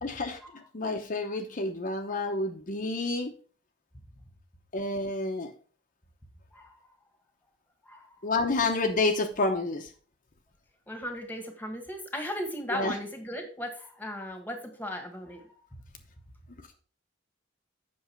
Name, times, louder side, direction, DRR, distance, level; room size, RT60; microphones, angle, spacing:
voice 1, 0.0-0.4 0.7-3.3 4.7-5.5 8.2-9.9 12.7-12.9, left 2 dB, 45° left, 4 dB, 0.9 m, -29 dB
voice 2, 7.8-8.2 10.9-15.5, left 1 dB, 10° left, 4 dB, 1.7 m, -37 dB
8.1 x 6.2 x 4.5 m, 0.40 s
head